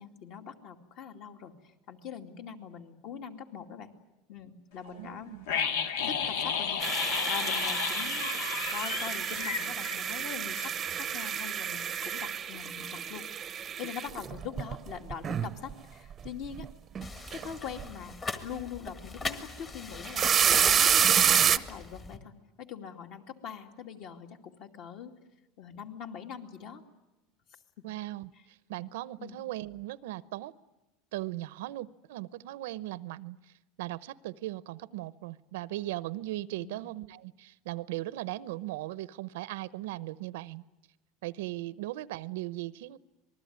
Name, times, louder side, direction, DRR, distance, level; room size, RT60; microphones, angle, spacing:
voice 1, 0.0-1.5 1.9-3.9 4.3-5.3 6.0-6.8 7.3-13.3 13.8-16.7 17.3-18.2 18.4-22.3 22.6-25.1 25.6-26.8 29.2-29.4 36.6-36.8, left 7 dB, 50° left, 6 dB, 2.4 m, -42 dB
voice 2, 4.8-5.5 27.8-30.5 31.1-33.4 33.8-40.6 41.2-43.0, right 16 dB, 85° right, 18 dB, 0.8 m, -38 dB
sound 1, 5.5-10.3 10.5-10.7, left 7 dB, 85° left, 1.9 m, -32 dB
sound 2, 6.8-15.7 16.1-16.6 16.9-17.5 17.8-17.9 19.9-21.6, right 8 dB, 25° right, 0.8 m, -28 dB
sound 3, 17.0-22.2, left 3 dB, 20° left, 1.6 m, -40 dB
26.5 x 20.0 x 9.5 m, 1.0 s
supercardioid pair, 155°, 0 cm